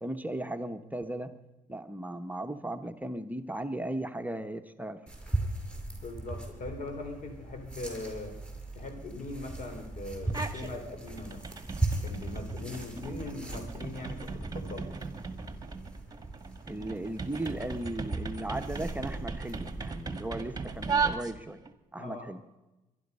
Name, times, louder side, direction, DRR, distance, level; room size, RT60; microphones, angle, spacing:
voice 1, 0.0-1.3 1.7-5.0 16.7-21.6 21.9-22.4, right 1 dB, 10° right, 7 dB, 1.1 m, -36 dB
sound 1, 5.1-21.1, right 2 dB, 5° left, 5.2 m, -39 dB
voice 2, 6.0-8.3 8.8-11.4 12.0-14.9 22.0-22.3, left 2 dB, 60° left, 6 dB, 3.7 m, -40 dB
sound 2, 10.2-10.7 11.1-21.7, right 5 dB, 25° right, 1.6 m, -37 dB
23.0 x 11.5 x 5.5 m, 1.0 s
cardioid pair, 70°, 14 cm